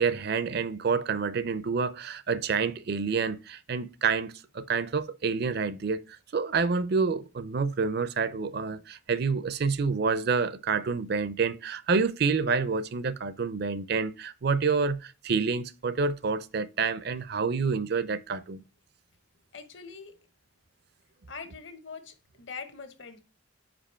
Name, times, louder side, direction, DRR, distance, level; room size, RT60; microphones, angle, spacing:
voice 1, 0.0-6.0 6.3-18.6, right 5 dB, 50° right, 0.5 m, -28 dB
voice 2, 19.5-20.1 21.3-23.2, left 5 dB, 60° left, 1.1 m, -43 dB
5.1 x 5.1 x 4.3 m
head